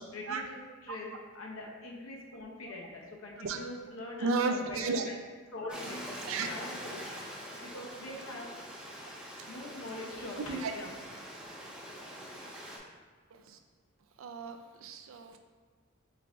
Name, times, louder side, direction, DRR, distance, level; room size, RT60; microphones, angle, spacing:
voice 1, 0.1-4.9 5.5-6.0 6.4-7.0 7.6-8.5 9.5-10.9 11.2-11.3, left 2 dB, 70° left, -1 dB, 0.7 m, -43 dB
voice 2, 4.2-5.1 6.3-6.5 10.5-10.7 13.3-13.6 14.2-15.4, right 4 dB, 70° right, 6 dB, 0.4 m, -33 dB
Stream, 5.7-12.8, equal, 5° right, 0.6 m, -44 dB
4.7 x 2.5 x 3.4 m, 1.5 s
head